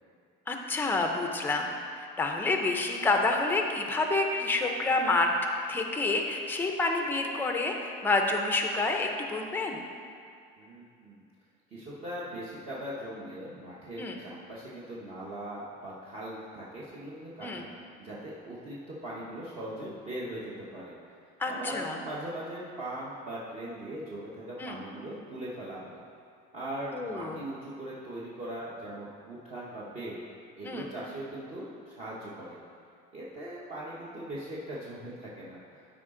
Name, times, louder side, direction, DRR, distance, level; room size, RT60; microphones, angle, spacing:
voice 1, 0.5-5.3 5.7-9.8 14.0-14.2 17.4-17.6 21.4-22.0 24.6-24.8 26.9-27.4 30.6-30.9, left 3 dB, 10° left, 3 dB, 0.6 m, -28 dB
voice 2, 10.6-11.2 11.7-17.7 18.0-20.9 21.5-26.0 26.5-30.2 30.6-32.6 33.1-35.8, right 1 dB, 30° right, -7 dB, 1.1 m, -40 dB
12.5 x 4.9 x 3.8 m, 2.3 s
cardioid pair, 170°, 21 cm